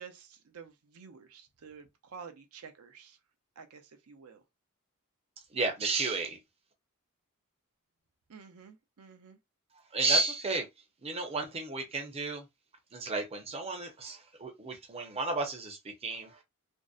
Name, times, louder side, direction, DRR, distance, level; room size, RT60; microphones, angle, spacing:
voice 1, 0.0-3.2 3.6-4.4 8.3-9.4, right 6 dB, 75° right, 0.5 m, -50 dB
voice 2, 5.5-6.4 9.9-10.7 11.0-12.4 12.9-16.3, right 3 dB, 25° right, 0.6 m, -32 dB
2.5 x 2.0 x 2.3 m
head